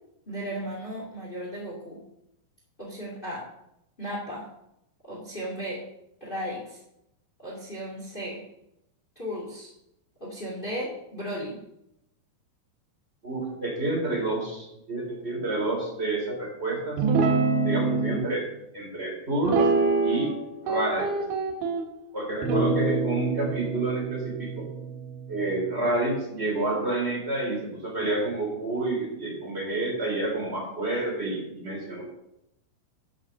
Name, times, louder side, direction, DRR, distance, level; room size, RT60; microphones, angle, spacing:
voice 1, 0.2-2.0 2.8-3.5 4.0-4.5 5.0-5.8 6.2-6.8 7.4-8.4 9.1-9.7 10.2-11.6, equal, 55° left, -3 dB, 0.5 m, -35 dB
voice 2, 13.2-17.0 17.6-18.5 18.7-19.7 20.0-20.3 20.6-21.1 22.1-24.7 25.3-32.1, right 2 dB, 15° right, -2 dB, 2.6 m, -29 dB
Guitar, 17.0-18.2 19.4-20.4 20.7-21.8 22.4-25.9, right 4 dB, 70° right, 3.6 m, -26 dB
11.0 x 6.5 x 6.6 m, 0.82 s
omnidirectional pair, 5.6 m